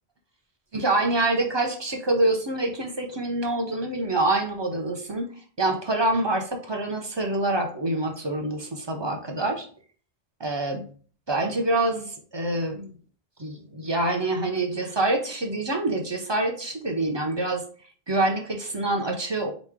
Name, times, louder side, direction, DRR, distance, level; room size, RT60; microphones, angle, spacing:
voice 1, 0.7-5.3 5.6-9.7 10.4-10.9 11.3-12.9 13.4-17.6 18.1-19.5, right 2 dB, 30° right, 3 dB, 0.6 m, -26 dB
3.8 x 3.1 x 3.6 m, 0.42 s
omnidirectional pair, 1.1 m